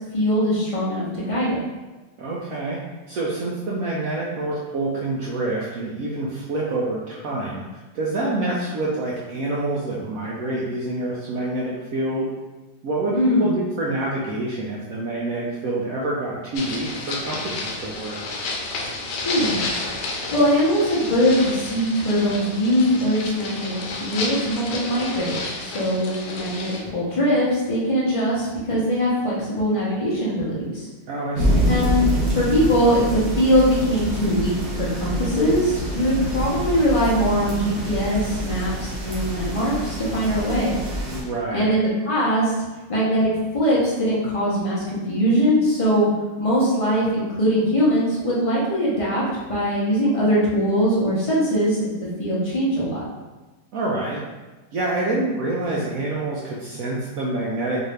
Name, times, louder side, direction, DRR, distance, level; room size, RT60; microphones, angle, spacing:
voice 1, 0.1-1.6 13.1-13.5 19.2-19.6 20.3-30.9 31.7-32.1 32.3-34.5 34.8-40.8 41.5-42.5 42.9-46.1 46.4-49.2 49.5-51.8 52.2-53.0, equal, 45° left, -8 dB, 0.4 m, -21 dB
voice 2, 2.2-2.8 3.1-7.6 7.9-12.3 12.8-18.2 31.1-31.7 41.1-41.8 53.7-54.2 54.7-57.8, right 2 dB, 75° right, -5 dB, 0.8 m, -27 dB
sound 1, 16.5-26.8, left 3 dB, 75° left, 1.2 m, -31 dB
sound 2, 31.4-41.2, equal, 55° right, 1.2 m, -26 dB
3.9 x 2.6 x 3.3 m, 1.2 s
omnidirectional pair, 2.0 m